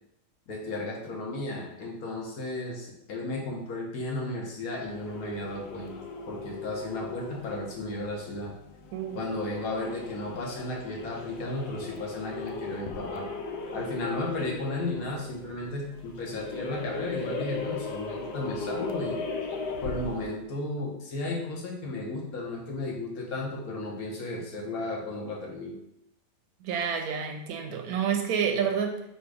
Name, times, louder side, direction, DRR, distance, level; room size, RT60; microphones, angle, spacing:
voice 1, 0.5-5.9 6.3-8.5 9.1-13.3 13.7-19.2 19.8-25.8, left 2 dB, 65° left, -1 dB, 1.3 m, -34 dB
sound 1, 4.7-20.4, left 4 dB, 90° left, 1.2 m, -38 dB
voice 2, 8.9-9.2 26.6-29.0, right 7 dB, 70° right, 5 dB, 0.9 m, -29 dB
4.3 x 2.7 x 4.7 m, 0.80 s
omnidirectional pair, 1.8 m